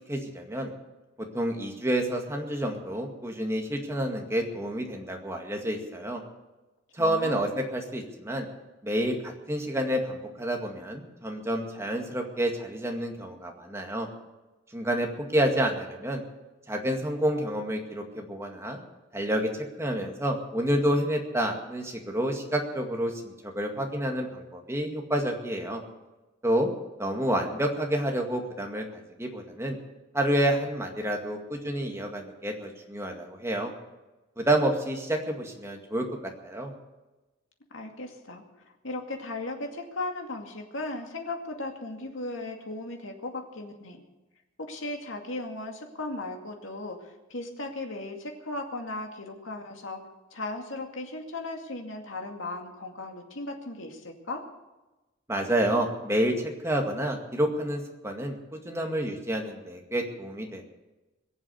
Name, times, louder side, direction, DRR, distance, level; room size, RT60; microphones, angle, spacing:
voice 1, 0.1-0.7 1.3-6.2 7.0-8.5 8.8-14.1 14.7-16.2 16.7-18.8 19.1-19.5 19.8-25.8 26.4-26.7 27.0-29.8 30.1-33.7 34.4-36.1 36.4-36.7 55.3-60.6, right 1 dB, 15° right, 2 dB, 2.0 m, -29 dB
voice 2, 7.0-7.5 37.7-44.0 44.6-50.0 50.3-54.4, left 2 dB, 85° left, 3 dB, 2.3 m, -37 dB
21.5 x 7.6 x 8.0 m, 1.1 s
head